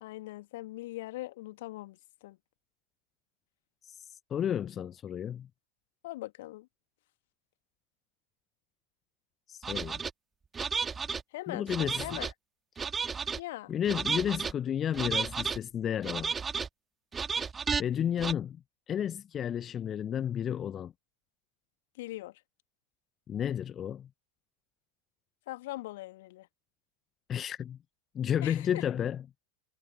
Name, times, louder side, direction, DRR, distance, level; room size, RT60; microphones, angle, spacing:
voice 1, 0.0-2.4 6.0-6.7 11.3-12.3 13.4-13.7 22.0-22.4 25.5-26.5 28.4-28.8, left 17 dB, 55° left, 1.7 m, -41 dB
voice 2, 3.8-5.5 9.5-10.0 11.5-12.2 13.7-16.3 17.8-20.9 23.3-24.1 27.3-27.8 28.1-29.3, left 9 dB, 25° left, 0.9 m, -32 dB
sound 1, 9.6-10.1 10.5-11.2 11.7-12.3 12.8-13.4 13.9-14.5 14.9-15.6 16.0-16.7 17.1-17.8 18.2-18.3, right 5 dB, 15° right, 2.0 m, -32 dB
figure-of-eight pair, 90°, 0 cm